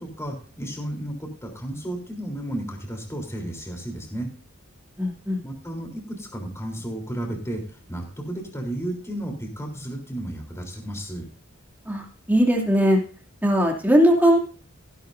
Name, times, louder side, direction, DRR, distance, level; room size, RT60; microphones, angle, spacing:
voice 1, 0.0-4.3 5.4-7.6 7.9-11.3, right 1 dB, 15° left, 1 dB, 3.6 m, -33 dB
voice 2, 5.0-5.4 11.9-12.0 12.3-13.0 13.4-14.4, equal, 10° right, 0 dB, 2.7 m, -19 dB
16.0 x 11.5 x 2.7 m, 0.40 s
head